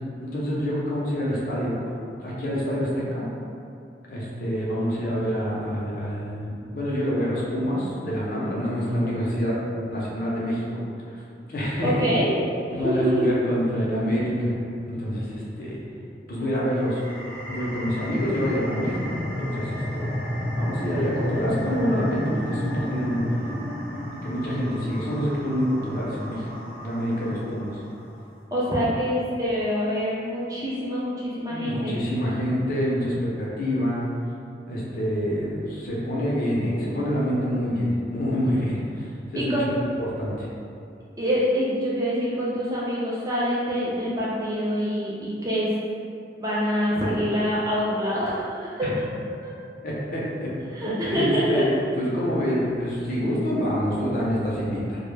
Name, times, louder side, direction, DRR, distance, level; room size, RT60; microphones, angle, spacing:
voice 1, 0.2-3.3 4.1-9.6 9.9-10.8 11.5-11.9 12.7-14.5 14.8-15.8 16.3-17.0 17.4-20.1 20.5-23.5 24.2-26.4 26.8-27.8 31.5-34.0 34.7-39.1 39.3-39.5 40.0-40.5 48.8-48.9 49.8-50.5 50.8-51.6 52.0-55.0, equal, 55° left, -6 dB, 0.5 m, -27 dB
voice 2, 11.8-12.3 12.7-13.2 28.5-32.0 39.3-39.7 41.2-45.8 46.4-48.9 49.4-49.5 50.7-51.6, equal, 20° right, -8 dB, 0.4 m, -25 dB
sound 1, 16.7-27.9, equal, 60° right, 0.7 m, -32 dB
2.1 x 2.0 x 3.2 m, 2.5 s
head